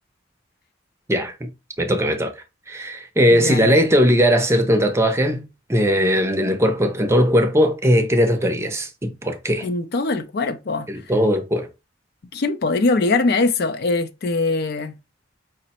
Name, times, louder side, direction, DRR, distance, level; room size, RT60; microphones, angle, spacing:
voice 1, 1.1-1.5 1.8-2.3 2.7-5.4 5.7-9.7 10.9-11.7, equal, 15° right, 0.5 m, -19 dB
voice 2, 3.3-3.8 9.6-10.9 12.3-15.0, left 3 dB, 55° left, 0.4 m, -22 dB
4.9 x 2.1 x 4.1 m
head